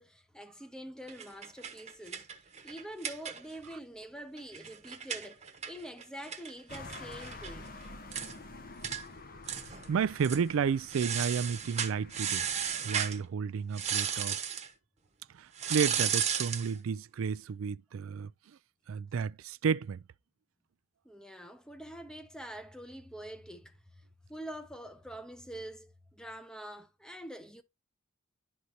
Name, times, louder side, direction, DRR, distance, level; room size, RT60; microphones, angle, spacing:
voice 1, 0.0-2.3 2.6-7.7 21.0-24.0 24.3-27.6, right 1 dB, 5° left, 0.7 m, -45 dB
sound 1, 1.1-3.7 4.0-4.1 4.4-7.5 7.8-7.9 8.1-8.3 8.8-9.0 9.4-9.9 10.2-10.4 10.9-13.2 13.7-14.7 15.6-16.7, right 8 dB, 35° right, 1.0 m, -34 dB
sound 2, 6.7-13.2, left 3 dB, 45° left, 1.0 m, -48 dB
voice 2, 9.9-12.5 12.8-14.4 15.3-18.3 18.9-20.0, right 6 dB, 90° right, 0.4 m, -32 dB
11.5 x 4.1 x 3.0 m
head